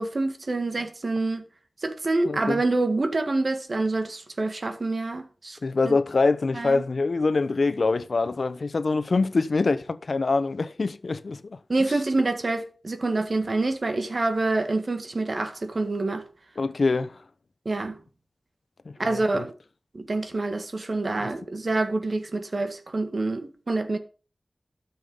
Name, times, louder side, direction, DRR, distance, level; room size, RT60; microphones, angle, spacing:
voice 1, 0.0-1.4 1.8-5.6 5.8-6.0 6.5-6.8 11.7-16.2 17.7-18.0 19.0-19.5 19.9-24.0, right 2 dB, 60° right, 1.8 m, -26 dB
voice 2, 2.2-2.6 5.6-11.6 16.6-17.1 19.0-19.4, left 3 dB, 80° left, 0.8 m, -24 dB
13.0 x 7.0 x 5.6 m
wide cardioid pair, 70°, 0 cm